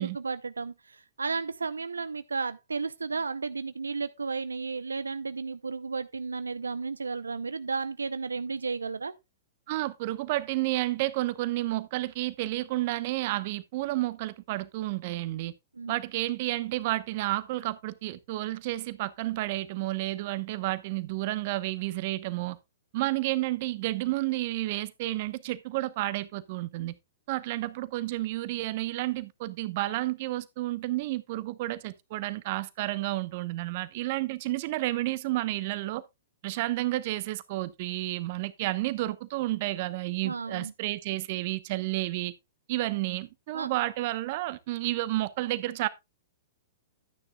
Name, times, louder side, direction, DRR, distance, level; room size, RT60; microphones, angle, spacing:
voice 1, 0.0-9.1 15.8-16.0 40.2-40.7 43.5-43.7, right 4 dB, 80° right, 0.6 m, -33 dB
voice 2, 9.7-15.5 15.9-22.6 22.9-27.0 27.3-36.0 36.4-42.3 42.7-45.9, right 17 dB, 50° right, 0.9 m, -31 dB
12.0 x 9.7 x 2.3 m
figure-of-eight pair, 110°, 0 cm